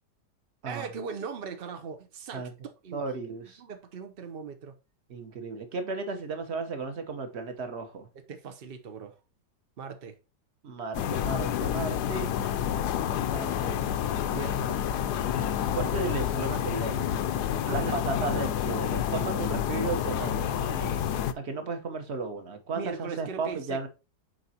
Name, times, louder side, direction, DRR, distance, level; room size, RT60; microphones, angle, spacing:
voice 1, 0.7-2.5 2.8-3.0 3.6-4.8 8.1-9.2 9.8-10.2 14.3-14.9 17.6-18.5 22.7-23.9, right 5 dB, 60° right, 0.6 m, -39 dB
voice 2, 2.9-3.6 5.1-8.1 10.6-12.3 13.3-13.8 15.7-17.1 17.7-23.9, right 4 dB, 45° right, 1.1 m, -34 dB
sound 1, 10.9-21.3, left 9 dB, 70° left, 1.1 m, -29 dB
7.6 x 4.7 x 2.8 m
omnidirectional pair, 2.0 m